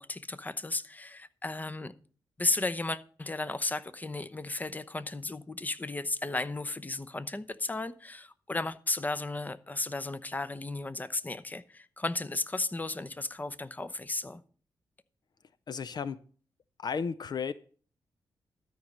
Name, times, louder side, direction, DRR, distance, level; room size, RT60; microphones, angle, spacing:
voice 1, 0.0-1.9 2.4-14.4, left 2 dB, 20° left, 0.8 m, -34 dB
voice 2, 15.7-16.2 16.8-17.5, left 6 dB, 55° left, 0.5 m, -33 dB
13.0 x 5.3 x 7.4 m
cardioid pair, 75°, 8 cm